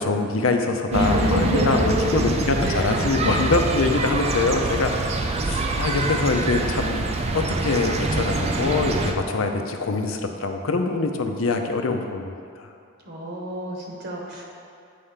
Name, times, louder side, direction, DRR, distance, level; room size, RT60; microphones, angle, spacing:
voice 1, 0.0-7.0 7.3-12.3 12.6-12.7, left 3 dB, 90° left, 5 dB, 0.6 m, -24 dB
sound 1, 0.9-9.1, right 2 dB, 30° right, 0.5 m, -25 dB
voice 2, 0.9-2.3 2.6-3.1 13.0-14.4, equal, 55° right, -1 dB, 1.0 m, -27 dB
8.4 x 3.4 x 5.6 m, 2.4 s
head